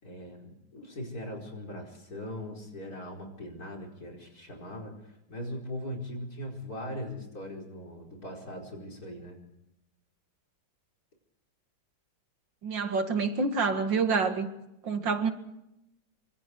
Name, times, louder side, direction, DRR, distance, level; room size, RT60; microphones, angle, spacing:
voice 1, 0.0-9.4, left 1 dB, 55° left, 0 dB, 5.3 m, -40 dB
voice 2, 12.6-14.5 14.8-15.3, right 4 dB, 85° right, 7 dB, 2.7 m, -27 dB
26.0 x 25.0 x 4.7 m, 0.86 s
omnidirectional pair, 2.0 m